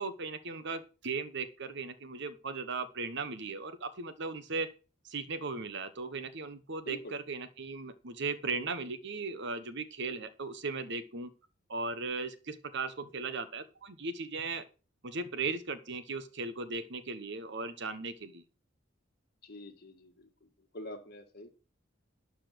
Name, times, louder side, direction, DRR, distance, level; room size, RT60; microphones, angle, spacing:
voice 1, 0.0-4.7 5.0-11.3 11.7-14.6 15.0-18.4, right 4 dB, 60° right, 12 dB, 1.2 m, -37 dB
voice 2, 19.4-20.5 20.7-21.5, left 1 dB, 50° left, 5 dB, 2.0 m, -46 dB
12.0 x 4.2 x 7.9 m, 0.34 s
head